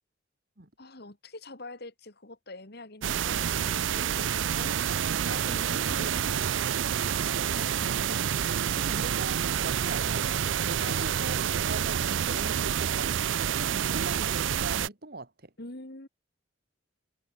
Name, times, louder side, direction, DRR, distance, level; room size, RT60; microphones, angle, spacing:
voice 1, 0.8-6.6 10.8-11.4 15.6-16.1, left 2 dB, 55° left, 2.6 m, -45 dB
sound 1, 3.0-14.9, right 8 dB, 75° right, 0.5 m, -28 dB
voice 2, 7.3-13.1 13.4-15.5, right 2 dB, 55° right, 2.7 m, -41 dB
head